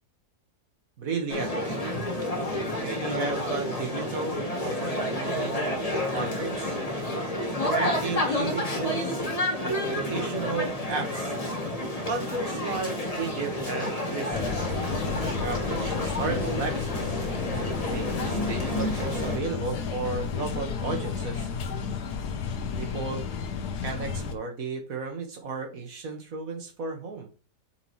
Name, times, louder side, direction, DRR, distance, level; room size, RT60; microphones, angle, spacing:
voice 1, 1.0-1.8 2.8-5.7 6.1-6.7 7.5-9.3 9.6-11.4 12.1-14.4 15.1-17.2 17.9-21.5 22.8-23.3 23.8-27.3, right 4 dB, 60° right, 3 dB, 1.9 m, -34 dB
sound 1, 1.3-19.4, left 1 dB, 25° left, 1.4 m, -30 dB
sound 2, 14.3-24.3, left 6 dB, 85° left, 1.5 m, -32 dB
8.5 x 5.1 x 3.1 m, 0.35 s
omnidirectional pair, 1.7 m